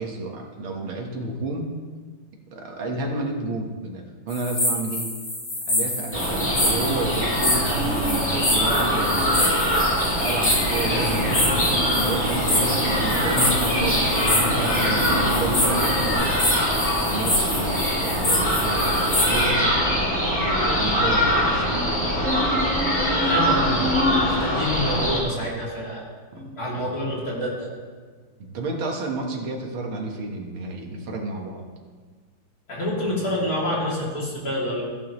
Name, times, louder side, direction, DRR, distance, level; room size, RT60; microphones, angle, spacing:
voice 1, 0.0-1.7 2.5-5.1 5.7-9.7 10.1-11.5 12.0-16.4 17.0-19.7 20.3-21.9 23.6-23.9 26.3-26.5 26.7-26.9 28.4-31.6, right 2 dB, 75° right, 1 dB, 2.2 m, -31 dB
sound 1, 4.3-19.4, left 1 dB, 75° left, 4.7 m, -27 dB
sound 2, 6.1-25.2, equal, 5° left, 2.4 m, -23 dB
sound 3, 10.8-16.1, equal, 25° right, 4.3 m, -29 dB
voice 2, 23.3-26.0 26.3-27.7 32.7-34.8, left 1 dB, 45° left, -6 dB, 3.2 m, -28 dB
14.5 x 11.0 x 3.1 m, 1.5 s
omnidirectional pair, 2.3 m